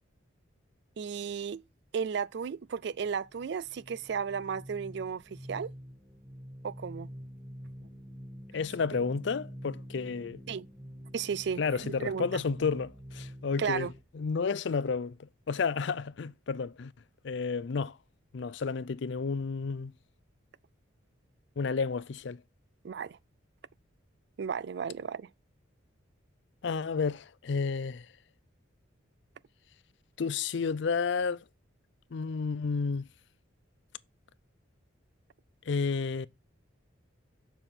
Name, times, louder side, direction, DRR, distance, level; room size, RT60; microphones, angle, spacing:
voice 1, 1.0-1.6 1.9-5.7 6.6-7.1 10.5-10.7 11.1-12.3 13.6-13.9 22.8-23.2 24.4-25.3, right 6 dB, 55° right, 0.3 m, -34 dB
sound 1, 2.9-14.0, equal, 25° right, 1.8 m, -47 dB
voice 2, 8.5-10.4 11.6-13.9 14.1-16.9 17.2-18.0 18.3-19.9 21.6-22.4 26.6-28.1 30.2-31.4 32.1-33.1 35.6-36.3, left 5 dB, 60° left, 0.4 m, -31 dB
6.9 x 5.7 x 4.3 m
head